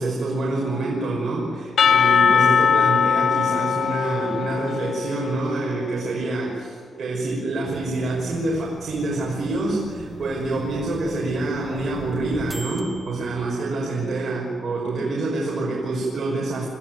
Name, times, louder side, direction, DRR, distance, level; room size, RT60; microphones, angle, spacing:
voice 1, 0.0-16.7, right 2 dB, 50° right, -4 dB, 5.6 m, -26 dB
Percussion / Church bell, 1.8-5.8, left 7 dB, 60° left, 0.6 m, -20 dB
sound 1, 7.6-14.1, right 1 dB, 10° right, 1.3 m, -38 dB
25.5 x 15.5 x 9.4 m, 2.2 s
wide cardioid pair, 135°, 0 cm